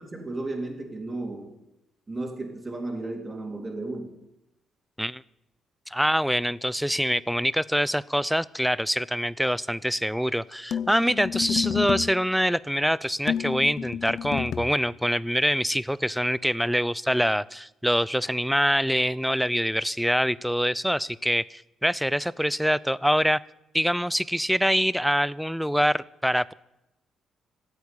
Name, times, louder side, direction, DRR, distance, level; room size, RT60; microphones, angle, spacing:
voice 1, 0.0-1.5 2.1-4.2, right 2 dB, 25° right, 3 dB, 3.5 m, -34 dB
voice 2, 5.9-23.4 23.7-26.5, equal, ahead, 20 dB, 0.5 m, -25 dB
sound 1, 10.7-12.2 13.3-14.8, left 8 dB, 65° left, 0.6 m, -30 dB
14.5 x 8.4 x 9.9 m, 0.87 s
cardioid pair, 90°, 0 cm